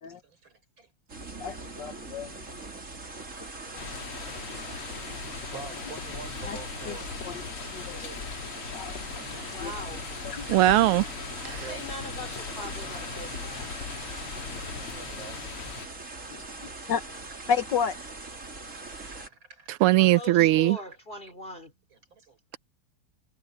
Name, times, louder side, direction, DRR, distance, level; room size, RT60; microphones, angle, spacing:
voice 1, 0.0-0.9 2.6-2.9 3.3-7.2 7.9-8.2 8.6-8.7 11.6-11.8 14.7-15.4 16.5-16.6 18.3-18.7 19.1-19.9 21.9-22.6, right 5 dB, 60° right, 5.6 m, -48 dB
sound 1, 1.1-19.3, right 3 dB, 35° right, 3.5 m, -41 dB
voice 2, 1.4-2.5 6.5-6.6 6.9-7.0 7.2-8.0 8.6-9.7 10.2-10.5 16.3-16.5 16.9-17.0 17.5-17.9, left 7 dB, 60° left, 1.4 m, -32 dB
sound 2, 3.8-15.9, left 6 dB, 90° left, 2.8 m, -39 dB
voice 3, 9.5-10.0 11.4-13.7 19.9-21.7, equal, 25° left, 3.8 m, -41 dB
voice 4, 10.5-11.1 11.4-11.6 19.7-20.8, right 16 dB, 85° right, 1.5 m, -20 dB
omnidirectional pair, 2.4 m